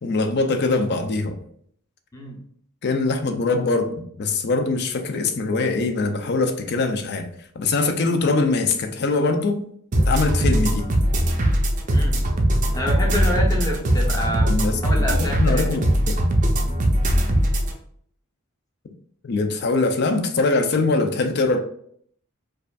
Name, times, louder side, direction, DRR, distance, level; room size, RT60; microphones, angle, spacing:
voice 1, 0.0-1.4 2.8-3.9 4.2-7.3 7.5-9.6 10.1-10.9 14.5-14.8 15.2-16.2 19.2-21.6, left 3 dB, 50° left, 6 dB, 0.5 m, -22 dB
sound 1, 9.9-17.7, equal, 35° right, 0.5 m, -20 dB
voice 2, 12.7-14.5 14.8-15.7, equal, 15° left, -1 dB, 0.7 m, -27 dB
4.7 x 2.5 x 2.4 m, 0.63 s
head